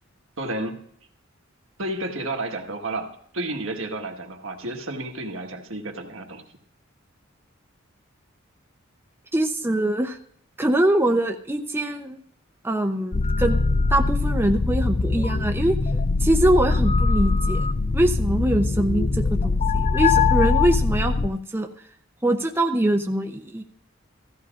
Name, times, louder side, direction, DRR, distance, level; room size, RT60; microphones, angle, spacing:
voice 1, 0.4-0.8 1.8-6.4, right 2 dB, 80° right, 3 dB, 1.6 m, -31 dB
voice 2, 9.3-10.2 10.6-12.2 12.6-13.6 13.9-15.8 16.2-21.7 22.2-23.6, right 1 dB, 10° right, 3 dB, 0.7 m, -23 dB
sound 1, 13.1-21.3, left 3 dB, 35° left, 0.4 m, -22 dB
16.0 x 14.0 x 2.5 m, 0.64 s
head